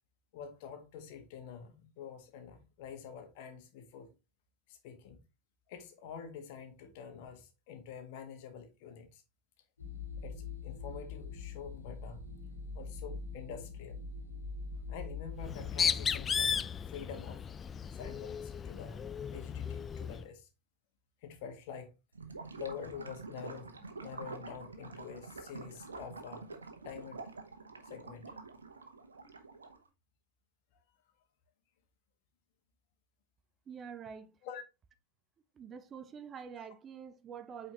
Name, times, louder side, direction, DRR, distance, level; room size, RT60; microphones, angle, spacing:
voice 1, 0.3-4.1 4.7-5.2 5.7-9.2 10.2-12.2 12.7-14.0 14.9-17.4 17.9-20.5 21.2-21.9 22.6-26.5 26.8-27.2 27.8-28.3 34.4-34.6, left 7 dB, 50° left, 1.6 m, -47 dB
sound 1, 9.8-16.2, left 4 dB, 80° left, 1.9 m, -43 dB
Bird, 15.4-20.2, left 7 dB, 25° left, 0.3 m, -35 dB
Gurgling / Liquid, 22.1-29.9, right 4 dB, 75° right, 1.1 m, -47 dB
voice 2, 33.7-34.3 35.6-37.7, right 7 dB, 25° right, 0.6 m, -46 dB
8.6 x 4.2 x 2.9 m
figure-of-eight pair, 85°, 0 cm